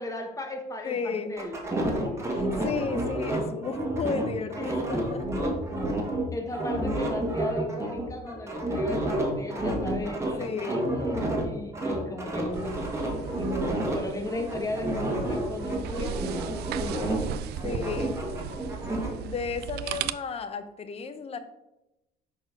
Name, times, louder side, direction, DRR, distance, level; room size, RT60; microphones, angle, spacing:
voice 1, 0.0-1.6 4.6-4.8 5.8-5.9 6.3-10.8 11.4-17.1, left 1 dB, 20° left, 3 dB, 1.4 m, -36 dB
voice 2, 0.8-1.4 2.3-5.3 10.4-10.9 17.6-18.2 19.2-21.4, left 5 dB, 35° left, 10 dB, 0.8 m, -33 dB
sound 1, 1.4-6.2 6.5-11.4 11.7-14.0 14.3-17.3 17.6-19.1, right 1 dB, 15° right, 1.7 m, -30 dB
sound 2, 12.5-20.1, right 10 dB, 75° right, 0.4 m, -37 dB
6.0 x 4.3 x 6.0 m, 0.92 s
cardioid pair, 110°, 17 cm